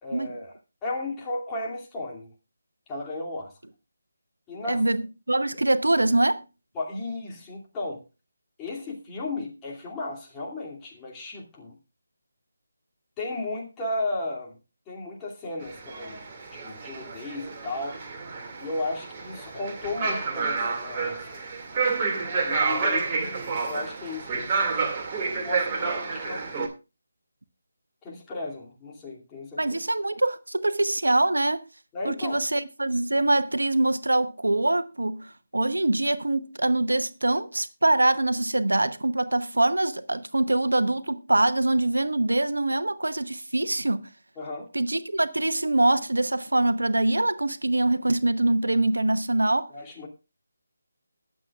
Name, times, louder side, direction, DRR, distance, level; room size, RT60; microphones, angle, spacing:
voice 1, 0.0-2.3 2.9-3.5 4.5-4.8 6.7-8.0 8.6-11.7 13.2-14.6 14.9-16.2 16.5-18.0 18.6-21.4 22.4-24.5 25.4-26.7 28.0-29.6 31.9-32.4 44.4-44.7 49.7-50.1, left 2 dB, 15° left, 2.6 m, -34 dB
voice 2, 4.7-5.0 5.3-6.4 29.6-31.6 32.0-44.0 44.7-49.7, right 2 dB, 80° right, 0.9 m, -24 dB
sound 1, 15.6-26.7, right 4 dB, 25° right, 2.3 m, -29 dB
22.0 x 7.5 x 2.4 m
figure-of-eight pair, 155°, 0 cm